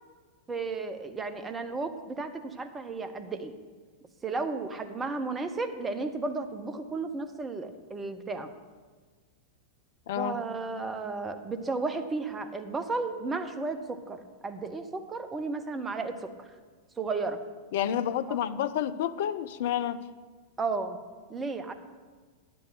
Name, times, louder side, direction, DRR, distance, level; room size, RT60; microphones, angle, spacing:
voice 1, 0.5-3.6 4.2-8.5 10.2-16.5 17.0-17.4 18.3-18.4 20.6-21.0 21.3-21.7, right 3 dB, 15° right, 8 dB, 0.8 m, -33 dB
voice 2, 10.1-10.4 17.7-20.0, left 10 dB, 55° left, 13 dB, 0.4 m, -29 dB
10.5 x 6.2 x 6.1 m, 1.5 s
figure-of-eight pair, 90°, 0 cm